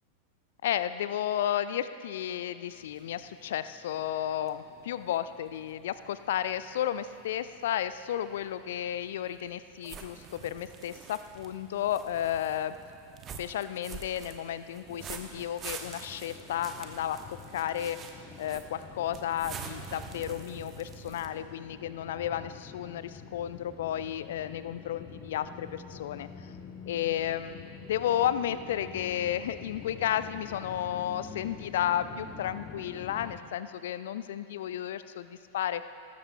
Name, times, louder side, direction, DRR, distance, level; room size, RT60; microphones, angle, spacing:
voice 1, 0.6-12.8 13.4-17.2 17.5-18.0 18.4-26.5 26.9-35.8, left 11 dB, 60° left, 13 dB, 0.4 m, -33 dB
sound 1, 2.7-21.3, right 6 dB, 30° right, 1.0 m, -47 dB
sound 2, 15.8-33.4, left 6 dB, 30° left, 0.9 m, -47 dB
19.0 x 14.5 x 2.3 m, 2.8 s
figure-of-eight pair, 90°, 0 cm